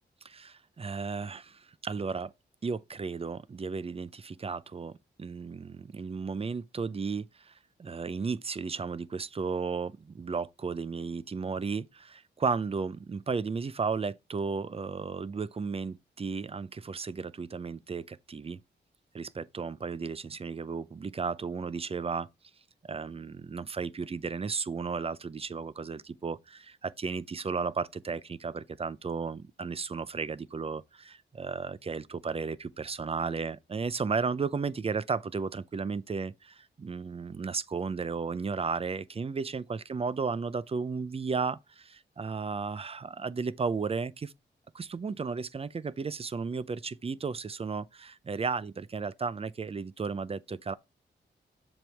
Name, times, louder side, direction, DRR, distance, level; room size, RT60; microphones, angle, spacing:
voice 1, 0.2-2.3 2.6-7.5 7.8-18.6 19.1-22.3 22.8-44.3 44.7-50.7, right 5 dB, 30° right, 0.5 m, -34 dB
7.5 x 5.4 x 3.4 m
wide cardioid pair, 100°, 19 cm